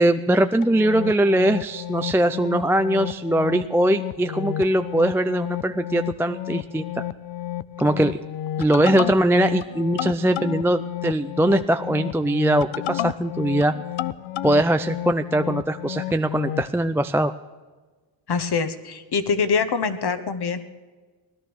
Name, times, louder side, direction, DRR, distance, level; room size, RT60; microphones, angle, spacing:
voice 1, 0.0-7.0 7.8-8.2 8.6-13.7 14.4-17.3, right 1 dB, 5° right, 8 dB, 0.4 m, -21 dB
sound 1, 0.6-16.7, left 13 dB, 75° left, 0.6 m, -32 dB
voice 2, 18.3-20.6, left 5 dB, 55° left, 10 dB, 1.4 m, -24 dB
17.5 x 11.5 x 6.3 m, 1.3 s
cardioid pair, 105°, 48 cm